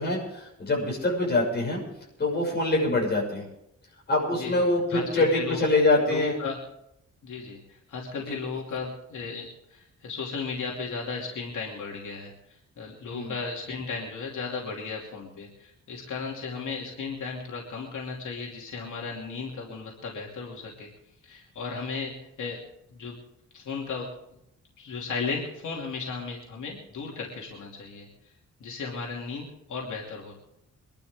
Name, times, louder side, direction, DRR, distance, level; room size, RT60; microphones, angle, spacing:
voice 1, 0.0-1.8 2.2-3.4 4.1-6.4 8.2-8.3 13.1-13.3, left 2 dB, 35° left, -2 dB, 6.5 m, -24 dB
voice 2, 4.4-5.6 6.1-6.6 7.2-7.6 7.9-12.3 12.8-20.9 21.2-22.6 22.9-23.2 23.5-24.1 24.8-28.1 28.6-30.3, left 4 dB, 80° left, -2 dB, 2.8 m, -35 dB
24.5 x 12.0 x 3.7 m, 0.80 s
wide cardioid pair, 150°, 30 cm